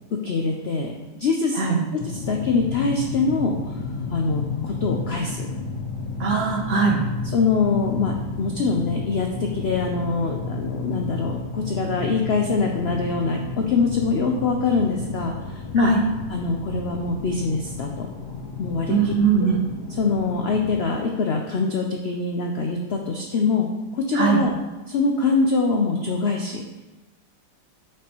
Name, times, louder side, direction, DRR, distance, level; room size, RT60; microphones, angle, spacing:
voice 1, 0.2-0.9 1.2-1.6 1.9-3.8 4.1-5.5 6.8-6.9 7.2-8.1 8.4-15.9 16.3-18.1 18.6-19.1 19.4-19.5 20.0-24.5 24.9-26.6, left 4 dB, 70° left, 2 dB, 0.6 m, -24 dB
sound 1, 2.0-20.8, left 4 dB, 90° left, 1.5 m, -32 dB
voice 2, 6.2-7.0 15.8-16.0 18.9-19.6 24.1-24.4, right 5 dB, 55° right, 2 dB, 1.0 m, -20 dB
8.4 x 5.2 x 2.9 m, 1.1 s
omnidirectional pair, 1.7 m